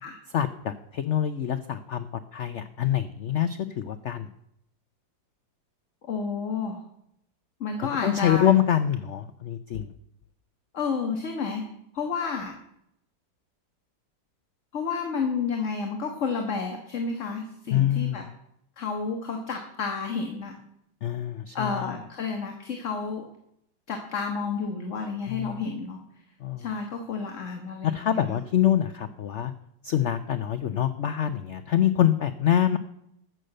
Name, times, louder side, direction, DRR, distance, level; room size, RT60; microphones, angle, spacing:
voice 1, 0.3-2.1 2.3-4.3 8.0-9.9 17.7-18.2 21.0-21.9 25.3-25.6 26.4-26.7 27.8-29.5 29.8-32.8, left 10 dB, 80° left, 11 dB, 0.6 m, -25 dB
voice 2, 6.1-6.8 7.6-8.5 10.7-11.7 11.9-12.5 14.7-18.2 18.8-20.5 21.5-23.2 23.9-26.0 26.6-28.4, left 5 dB, 45° left, 3 dB, 1.6 m, -30 dB
14.0 x 6.7 x 7.7 m, 0.77 s
omnidirectional pair, 2.0 m